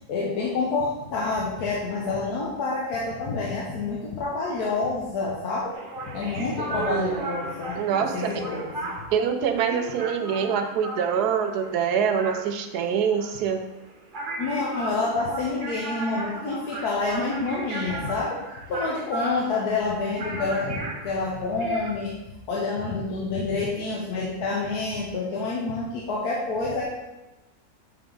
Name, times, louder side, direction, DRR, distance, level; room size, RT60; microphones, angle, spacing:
voice 1, 0.1-5.8 6.1-9.0 14.4-18.4 18.7-22.2 22.5-26.8, left 3 dB, 75° left, -4 dB, 1.4 m, -28 dB
sound 1, 5.7-21.9, right 2 dB, 40° right, 0.8 m, -36 dB
voice 2, 6.7-7.2 7.7-8.4 9.1-13.6, right 7 dB, 80° right, 6 dB, 1.2 m, -25 dB
7.9 x 3.5 x 3.8 m, 1.0 s
omnidirectional pair, 1.7 m